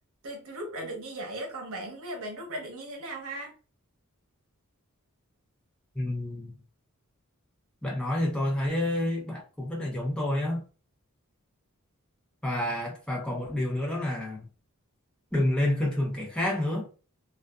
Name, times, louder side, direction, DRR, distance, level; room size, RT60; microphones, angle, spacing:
voice 1, 0.2-3.5, right 1 dB, 65° right, 0.8 m, -37 dB
voice 2, 5.9-6.5 7.8-10.7 12.4-14.5 15.3-16.9, left 1 dB, 5° left, 0.6 m, -29 dB
2.4 x 2.3 x 2.3 m
head